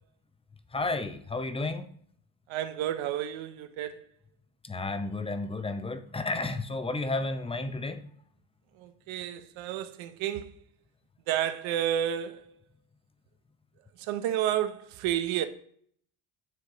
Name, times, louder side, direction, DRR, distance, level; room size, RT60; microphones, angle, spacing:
voice 1, 0.7-1.9 4.6-8.0, left 2 dB, 10° left, 0.6 m, -32 dB
voice 2, 2.5-4.0 8.8-10.5 11.3-12.5 14.0-15.5, right 11 dB, 80° right, 0.7 m, -31 dB
9.5 x 3.2 x 3.8 m
supercardioid pair, 80°, 47 cm